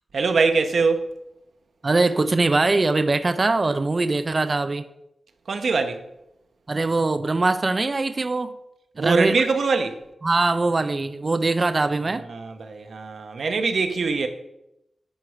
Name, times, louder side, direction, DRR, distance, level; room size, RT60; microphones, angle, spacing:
voice 1, 0.1-1.2 5.5-6.0 9.0-10.0 12.1-14.3, right 4 dB, 65° right, 0.8 m, -23 dB
voice 2, 1.8-4.9 6.7-8.5 9.0-9.3 10.2-12.2, right 3 dB, 30° right, 0.4 m, -22 dB
10.5 x 4.7 x 4.8 m
wide cardioid pair, 145°, 0 cm